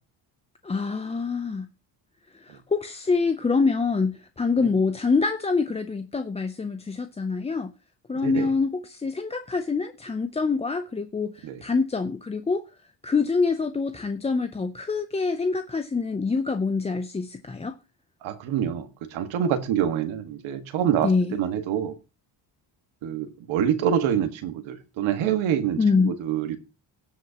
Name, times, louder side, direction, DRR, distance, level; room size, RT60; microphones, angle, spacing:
voice 1, 0.6-1.7 2.3-7.7 8.1-12.6 13.0-17.7 21.0-21.4 25.8-26.1, left 4 dB, 15° left, 0.5 m, -25 dB
voice 2, 18.2-22.0 23.0-25.8 26.0-26.6, right 9 dB, 80° right, 1.7 m, -26 dB
17.5 x 7.7 x 2.9 m
cardioid pair, 125°, 46 cm